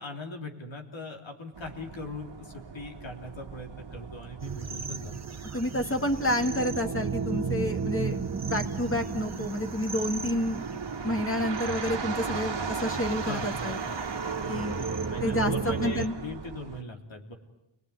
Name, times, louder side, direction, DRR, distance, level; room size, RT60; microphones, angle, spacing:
voice 1, 0.0-5.2 6.2-6.3 11.0-11.3 13.2-13.8 14.4-17.3, left 2 dB, 70° left, 3 dB, 3.6 m, -40 dB
sound 1, 1.5-16.8, right 5 dB, 60° right, 1.9 m, -38 dB
sound 2, 4.4-16.1, right 5 dB, 35° right, 1.2 m, -35 dB
voice 2, 5.5-8.2 8.5-10.6 11.0-13.8 14.5-14.8 15.2-16.1, left 1 dB, 25° left, 5 dB, 2.4 m, -29 dB
29.5 x 20.0 x 9.8 m, 0.88 s
wide cardioid pair, 105°, 48 cm